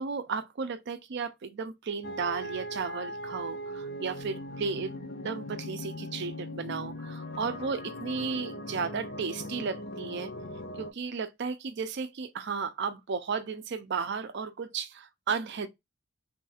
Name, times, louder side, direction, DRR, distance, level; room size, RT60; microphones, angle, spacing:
voice 1, 0.0-4.9 5.2-10.3 10.8-15.7, right 5 dB, 55° right, 0.5 m, -34 dB
sound 1, 2.0-10.9, left 1 dB, 50° left, 0.5 m, -39 dB
3.4 x 2.4 x 4.0 m
head